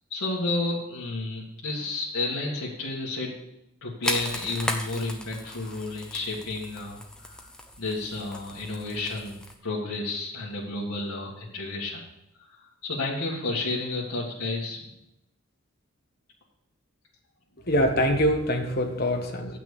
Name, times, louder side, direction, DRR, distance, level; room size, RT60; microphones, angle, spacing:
voice 1, 0.1-3.3 3.8-7.3 7.8-12.0 12.8-14.8, left 2 dB, 80° left, -5 dB, 1.8 m, -31 dB
sound 1, 4.0-9.5, left 1 dB, 5° left, 0.7 m, -36 dB
voice 2, 17.7-19.6, equal, 45° left, 3 dB, 1.2 m, -24 dB
8.1 x 6.0 x 7.1 m, 0.85 s
head